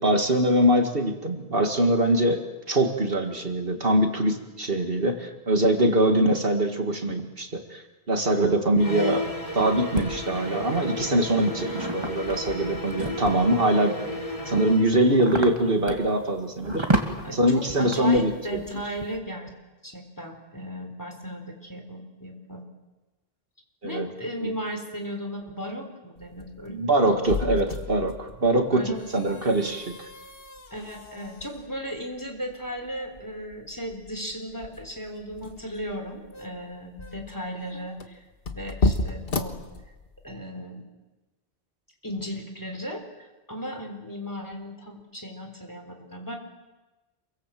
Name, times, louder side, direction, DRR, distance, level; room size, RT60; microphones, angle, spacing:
voice 1, 0.0-9.3 9.5-14.0 14.5-16.9 17.3-18.6 23.8-24.1 24.4-24.5 26.7-30.0, right 1 dB, 60° right, 5 dB, 2.2 m, -23 dB
sound 1, 8.8-14.9, left 1 dB, 35° left, 3.2 m, -33 dB
sound 2, 8.8-10.0 10.7-13.6 14.1-19.2, right 1 dB, 25° right, 2.3 m, -31 dB
voice 2, 17.2-19.5 19.8-22.6 23.8-27.2 28.7-29.4 30.7-38.2 38.5-39.6 40.2-40.8 42.0-46.4, equal, 20° left, 4 dB, 4.0 m, -36 dB
sound 3, 26.2-40.3, left 3 dB, 60° left, 1.8 m, -34 dB
27.5 x 23.5 x 7.7 m, 1.1 s
omnidirectional pair, 1.1 m